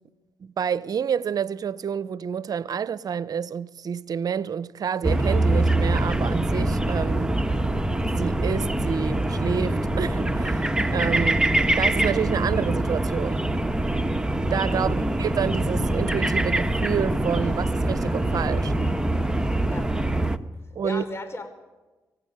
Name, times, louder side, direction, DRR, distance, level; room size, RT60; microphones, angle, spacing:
voice 1, 0.4-7.3 8.2-10.6 10.9-11.4 11.8-13.4 14.5-18.7 20.7-21.0, right 7 dB, 60° right, 0.7 m, -28 dB
sound 1, 5.0-20.4, right 1 dB, 10° right, 1.4 m, -24 dB
voice 2, 14.7-15.1 19.7-20.0 20.8-21.5, left 2 dB, 35° left, 5.1 m, -36 dB
25.0 x 16.0 x 9.9 m
cardioid pair, 65°, 7 cm